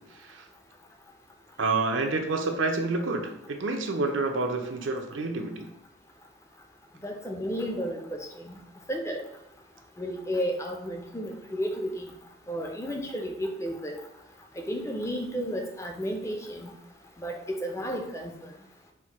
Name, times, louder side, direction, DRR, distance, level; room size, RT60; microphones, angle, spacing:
voice 1, 0.1-0.5 1.6-5.7, right 3 dB, 85° right, 4 dB, 0.6 m, -28 dB
voice 2, 7.0-8.2 8.4-8.6 8.9-9.2 10.0-12.1 12.5-13.9 14.6-16.7 17.2-18.3, equal, 15° left, 3 dB, 0.4 m, -32 dB
4.4 x 2.1 x 4.3 m, 0.83 s
head